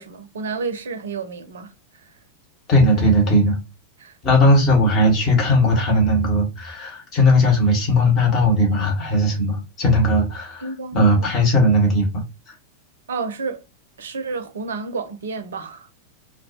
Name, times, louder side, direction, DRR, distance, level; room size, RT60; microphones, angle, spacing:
voice 1, 0.0-2.1 4.0-4.2 10.6-11.3 13.1-13.6 14.0-15.9, right 4 dB, 65° right, 0.5 m, -31 dB
voice 2, 2.7-3.6 4.2-12.2, left 1 dB, 35° left, 1.0 m, -18 dB
2.2 x 2.2 x 2.6 m
figure-of-eight pair, 90°, 0 cm